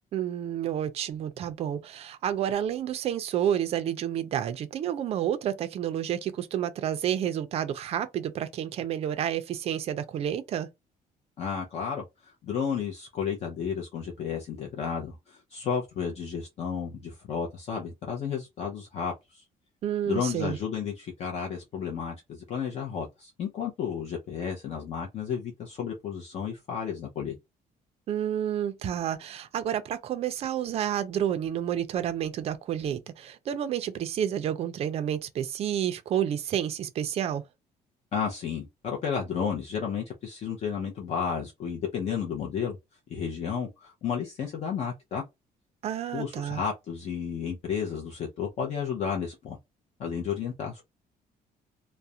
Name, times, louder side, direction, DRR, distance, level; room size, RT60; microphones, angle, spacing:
voice 1, 0.1-10.7 19.8-20.6 28.1-37.4 45.8-46.6, right 10 dB, 40° right, 0.4 m, -30 dB
voice 2, 11.4-19.4 20.1-27.4 38.1-42.8 43.1-45.2 46.1-49.6 50.0-50.8, left 7 dB, 40° left, 0.5 m, -32 dB
2.3 x 2.0 x 2.7 m
cardioid pair, 170°, 16 cm